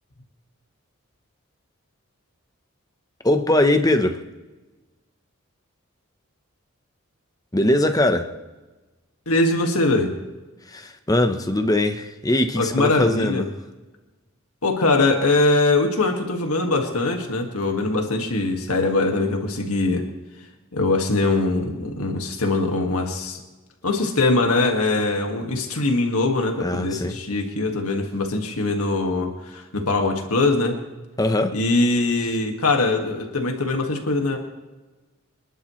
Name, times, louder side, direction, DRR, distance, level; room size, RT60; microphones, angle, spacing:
voice 1, 3.2-4.2 7.5-8.3 10.7-13.5 26.6-27.2 31.2-31.6, left 1 dB, 15° left, 7 dB, 1.0 m, -21 dB
voice 2, 9.3-10.1 12.6-13.5 14.6-20.0 20.7-23.4 23.8-30.8 31.5-34.4, left 2 dB, 85° left, 3 dB, 2.0 m, -22 dB
26.5 x 11.5 x 3.2 m, 1.2 s
head